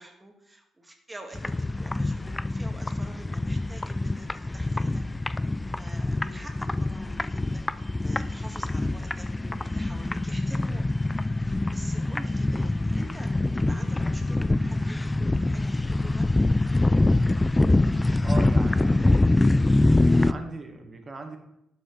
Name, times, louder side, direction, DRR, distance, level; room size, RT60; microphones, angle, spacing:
voice 1, 0.0-5.0 5.8-10.8 11.4-16.5 18.1-18.3 18.9-19.0, right 1 dB, 15° right, 3 dB, 1.6 m, -46 dB
sound 1, 1.3-20.3, left 2 dB, 15° left, 0.3 m, -24 dB
voice 2, 18.2-19.2 19.6-21.4, right 3 dB, 30° right, 4 dB, 1.5 m, -39 dB
12.0 x 5.0 x 3.9 m, 0.82 s
cardioid pair, 90°, 0 cm